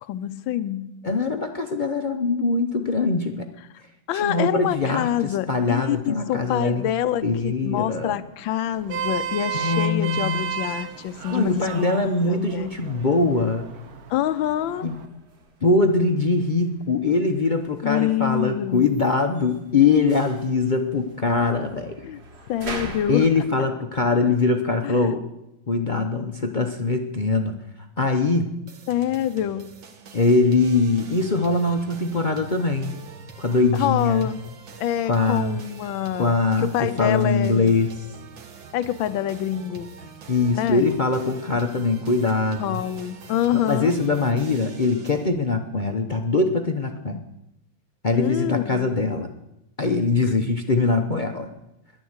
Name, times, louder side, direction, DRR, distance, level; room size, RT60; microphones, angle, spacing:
voice 1, 0.0-0.9 4.1-11.9 12.3-12.7 14.1-14.9 17.8-18.9 22.1-22.2 22.5-23.3 24.8-25.1 28.9-29.8 33.7-34.4 34.8-37.8 38.7-39.9 40.5-40.9 42.6-44.0 48.1-48.9, left 11 dB, 85° left, 13 dB, 1.5 m, -26 dB
voice 2, 1.0-3.5 4.2-5.1 5.5-6.9 7.2-8.2 9.5-10.5 11.3-13.7 14.8-14.9 15.6-22.0 23.1-25.2 25.7-27.5 28.0-28.5 30.1-33.0 33.4-34.3 35.1-35.6 36.2-37.9 40.3-42.8 43.7-47.2 48.0-49.3 49.8-51.5, left 3 dB, 50° left, 4 dB, 0.5 m, -22 dB
sound 1, 4.6-23.5, right 2 dB, 35° right, 1.5 m, -45 dB
Vehicle horn car horn honking, 8.7-15.1, right 8 dB, 60° right, 1.3 m, -33 dB
sound 2, 28.7-45.3, right 5 dB, 80° right, 2.1 m, -44 dB
11.5 x 11.0 x 8.0 m, 0.88 s
omnidirectional pair, 2.1 m